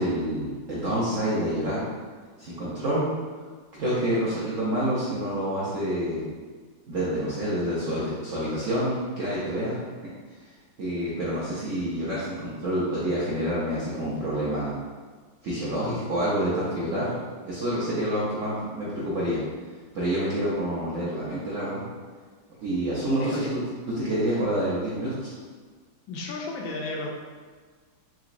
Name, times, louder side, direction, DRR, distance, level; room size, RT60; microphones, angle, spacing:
voice 1, 0.0-1.8 2.4-3.1 3.7-6.3 6.9-9.8 10.8-14.7 15.4-17.2 17.4-19.4 19.9-21.8 22.6-23.6 23.9-25.3, right 1 dB, 70° right, -8 dB, 0.7 m, -27 dB
voice 2, 23.2-23.5 26.1-27.1, left 2 dB, 80° left, 0 dB, 1.3 m, -33 dB
3.9 x 2.9 x 2.5 m, 1.5 s
omnidirectional pair, 2.1 m